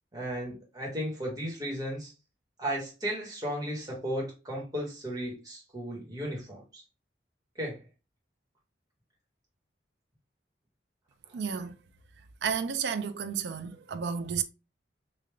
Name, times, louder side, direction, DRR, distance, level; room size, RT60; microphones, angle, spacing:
voice 1, 0.1-2.1 2.6-6.8 7.6-7.8, equal, 20° right, 1.2 m, -35 dB
voice 2, 11.3-11.8 12.4-14.4, right 6 dB, 65° right, 0.4 m, -32 dB
3.4 x 2.4 x 3.3 m
head